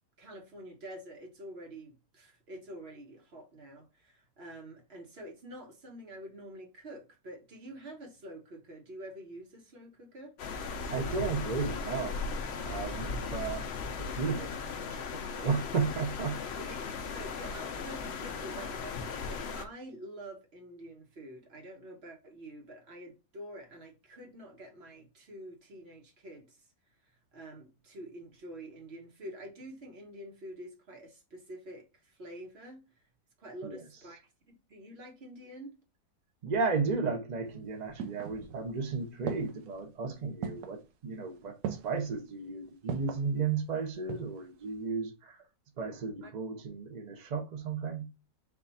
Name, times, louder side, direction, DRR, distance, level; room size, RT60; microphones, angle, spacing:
voice 1, 0.2-10.3 16.6-26.6 27.3-32.8 33.4-35.7 46.2-46.3, right 1 dB, 40° right, 1.2 m, -47 dB
sound 1, 10.4-19.6, left 5 dB, 75° left, 0.6 m, -37 dB
voice 2, 10.9-12.3 12.6-13.7 13.9-16.4 33.6-33.8 36.4-45.4 45.8-48.1, right 5 dB, 85° right, 0.3 m, -34 dB
sound 2, 37.5-38.8 39.3-39.8 40.4-40.8 41.6-42.1 42.9-43.3 43.8-44.4 44.7-44.8, right 7 dB, 70° right, 1.1 m, -39 dB
4.5 x 2.5 x 4.0 m
omnidirectional pair, 1.8 m